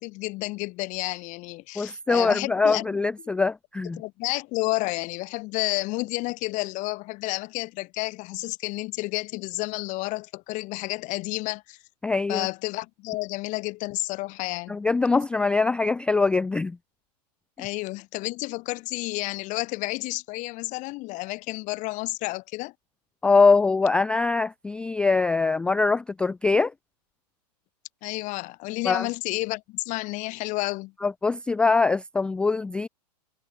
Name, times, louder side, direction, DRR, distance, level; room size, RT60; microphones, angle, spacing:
voice 1, 0.0-2.9 4.0-11.8 12.3-14.8 17.6-22.7 28.0-30.9, left 22 dB, 35° left, 1.7 m, -31 dB
voice 2, 1.8-4.0 12.0-12.5 14.7-16.8 23.2-26.7 28.8-29.1 31.0-32.9, left 4 dB, 5° left, 0.3 m, -23 dB
hypercardioid pair, 125°, 21 cm